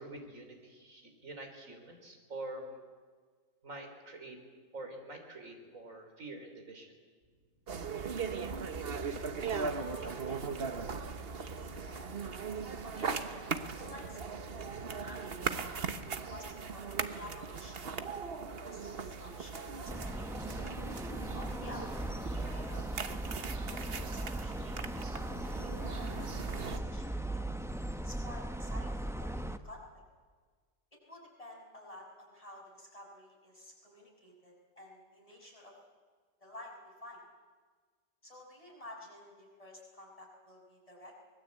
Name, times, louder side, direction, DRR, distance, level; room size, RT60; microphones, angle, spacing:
voice 1, 0.0-2.8 3.6-4.4 4.7-6.9, right 2 dB, 75° right, 4 dB, 3.9 m, -46 dB
sound 1, 7.7-26.8, right 5 dB, 50° right, 1.3 m, -39 dB
voice 2, 9.7-10.5 11.3-12.1 12.8-14.4 14.8-18.2 18.7-20.1 21.3-22.2 22.5-24.8 25.1-25.3 25.6-27.4 28.0-29.8 31.1-35.7 36.4-37.2 38.2-41.1, left 1 dB, 25° left, -2 dB, 6.2 m, -51 dB
sound 2, 19.9-29.6, right 1 dB, 5° right, 0.6 m, -38 dB
24.0 x 21.0 x 8.3 m, 1.5 s
omnidirectional pair, 1.4 m